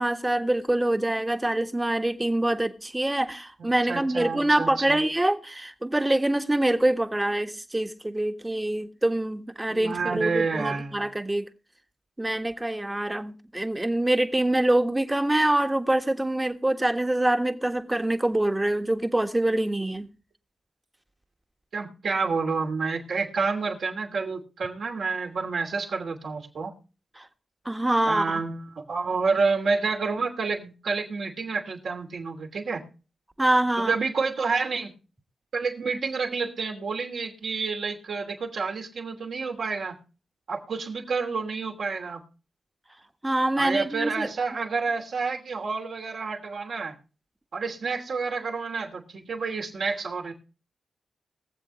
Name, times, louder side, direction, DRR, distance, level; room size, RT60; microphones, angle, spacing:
voice 1, 0.0-11.5 12.2-20.1 27.1-27.3 27.6-28.4 33.4-33.9 43.2-44.3, right 1 dB, 20° right, 1.5 m, -25 dB
voice 2, 3.6-5.0 9.7-11.1 21.7-26.7 28.1-32.8 33.8-34.9 35.5-40.0 40.5-42.2 43.6-46.9 47.5-50.3, right 4 dB, 70° right, 2.8 m, -29 dB
22.5 x 7.5 x 3.2 m
supercardioid pair, 45°, 0 cm